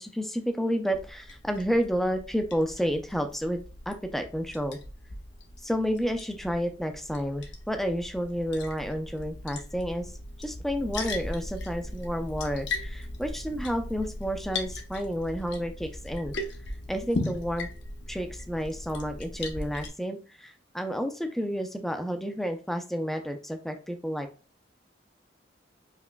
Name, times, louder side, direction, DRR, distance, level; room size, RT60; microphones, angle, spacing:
voice 1, 0.0-4.8 5.6-10.1 10.4-16.3 16.9-17.7 18.1-24.3, equal, ahead, 6 dB, 0.4 m, -30 dB
Liquid, 0.9-19.9, left 2 dB, 75° left, 0.8 m, -38 dB
4.8 x 3.0 x 2.2 m, 0.35 s
head